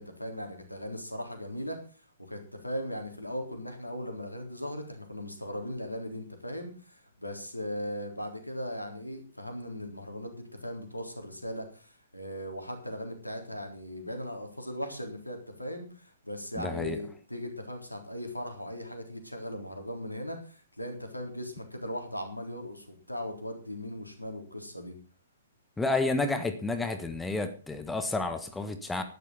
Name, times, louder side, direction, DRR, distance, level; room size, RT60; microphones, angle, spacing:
voice 1, 0.0-1.8 2.2-25.0, equal, 90° left, 4 dB, 3.8 m, -38 dB
voice 2, 16.6-17.0 25.8-29.0, left 3 dB, 5° left, 8 dB, 1.4 m, -30 dB
12.0 x 11.0 x 5.6 m, 0.37 s
figure-of-eight pair, 120°, 0 cm